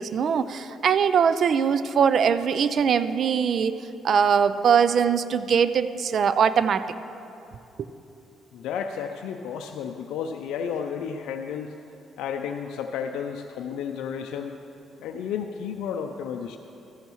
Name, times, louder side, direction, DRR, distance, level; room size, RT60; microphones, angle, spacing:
voice 1, 0.0-3.8 4.0-6.8, right 7 dB, 60° right, 13 dB, 0.4 m, -21 dB
voice 2, 8.5-11.7 12.2-14.6 15.0-16.6, left 7 dB, 80° left, 4 dB, 0.4 m, -32 dB
13.5 x 11.0 x 3.1 m, 2.7 s
supercardioid pair, 65°, 0 cm